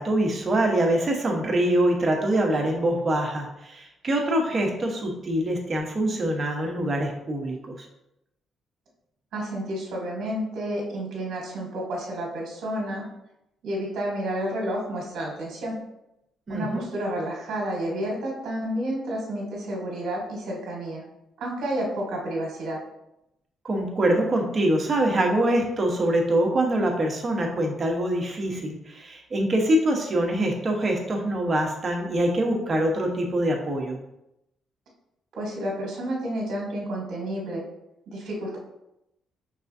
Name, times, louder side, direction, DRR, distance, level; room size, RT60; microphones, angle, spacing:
voice 1, 0.0-7.9 16.5-16.8 23.6-34.0, right 1 dB, 35° right, 1 dB, 1.0 m, -24 dB
voice 2, 9.3-13.0 13.6-15.7 16.5-21.0 21.4-22.8 35.3-37.6 38.1-38.6, right 1 dB, 70° right, -2 dB, 1.3 m, -30 dB
5.3 x 3.4 x 2.7 m, 0.85 s
cardioid pair, 90°, 0 cm